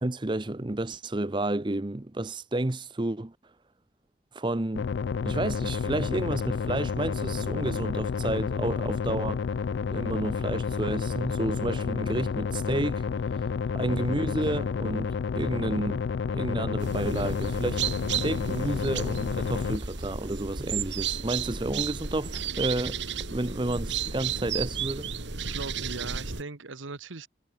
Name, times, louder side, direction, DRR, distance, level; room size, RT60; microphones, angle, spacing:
voice 1, 0.0-3.3 4.3-4.9 5.2-9.4 9.8-13.0 13.7-16.0 16.3-17.8 18.2-23.0 23.3-25.1, right 2 dB, 25° right, 0.7 m, -31 dB
sound 1, 4.7-19.8, left 5 dB, 65° left, 0.4 m, -30 dB
sound 2, 16.8-26.4, right 7 dB, 70° right, 2.6 m, -33 dB
voice 2, 25.4-27.3, right 3 dB, 90° right, 1.3 m, -39 dB
head